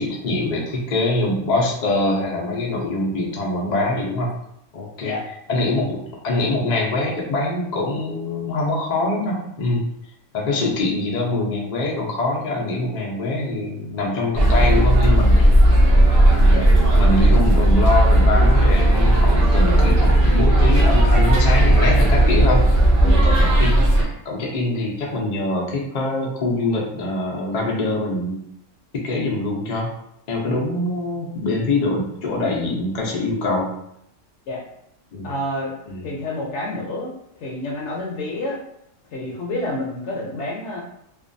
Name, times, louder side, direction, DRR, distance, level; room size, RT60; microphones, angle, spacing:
voice 1, 0.0-4.3 4.7-5.1 5.5-6.0 6.2-9.8 10.3-15.5 16.3-16.6 16.9-22.7 23.0-28.4 28.9-29.9 30.3-33.7 35.1-35.3 35.9-36.0, left 2 dB, 85° left, -3 dB, 0.3 m, -24 dB
sound 1, 14.3-24.0, right 1 dB, 60° right, 0.5 m, -15 dB
voice 2, 35.2-35.7 36.0-37.1 37.4-38.6 39.1-40.8, left 1 dB, 65° left, -2 dB, 0.7 m, -28 dB
2.5 x 2.2 x 2.5 m, 0.75 s
omnidirectional pair, 1.5 m